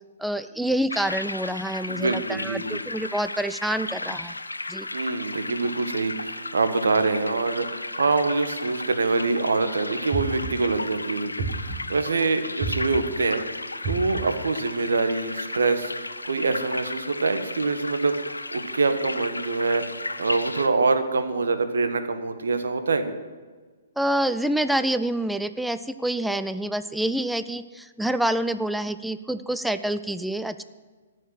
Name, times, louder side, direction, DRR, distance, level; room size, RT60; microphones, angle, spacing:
voice 1, 0.2-4.3 4.7-4.9 24.0-30.6, right 1 dB, ahead, 12 dB, 0.4 m, -27 dB
sound 1, 0.9-20.7, left 2 dB, 90° left, 0.7 m, -35 dB
voice 2, 1.9-2.8 4.9-13.4 13.8-19.8 20.2-23.1, right 3 dB, 70° right, 9 dB, 1.3 m, -25 dB
sound 2, 10.1-10.8 11.4-12.0 12.6-13.2 13.8-14.5, right 3 dB, 35° right, 5.0 m, -31 dB
14.0 x 6.6 x 7.6 m, 1.4 s
figure-of-eight pair, 125°, 0 cm